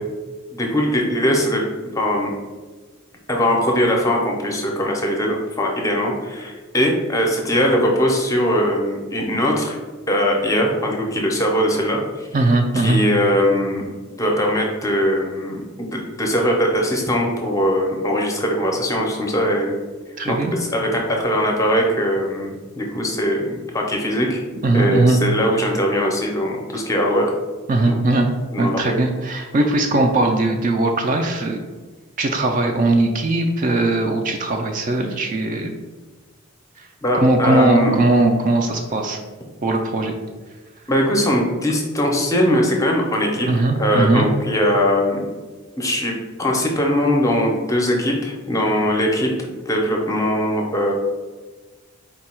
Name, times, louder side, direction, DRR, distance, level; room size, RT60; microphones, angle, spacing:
voice 1, 0.5-2.3 3.3-9.8 10.1-12.3 12.7-13.8 14.2-19.8 20.2-24.4 24.7-27.3 27.9-28.0 28.5-29.0 37.0-37.9 40.9-43.5 43.8-45.3 45.8-50.9, equal, 15° left, 0 dB, 0.5 m, -21 dB
voice 2, 12.3-13.0 20.2-20.6 24.6-25.2 27.7-28.3 28.6-31.6 32.2-35.8 37.1-39.2 39.6-40.2 43.4-44.3, right 2 dB, 35° right, 3 dB, 0.3 m, -19 dB
4.5 x 2.2 x 4.2 m, 1.3 s
head